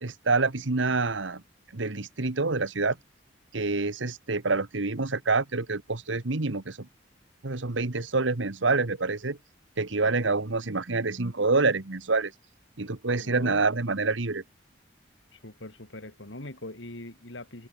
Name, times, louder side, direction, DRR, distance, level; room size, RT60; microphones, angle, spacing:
voice 1, 0.0-1.4 1.7-3.0 3.5-6.9 7.4-9.4 9.8-12.3 12.8-14.4, right 3 dB, 85° right, 1.4 m, -27 dB
voice 2, 13.2-13.6 15.3-17.7, left 1 dB, 85° left, 3.5 m, -42 dB
head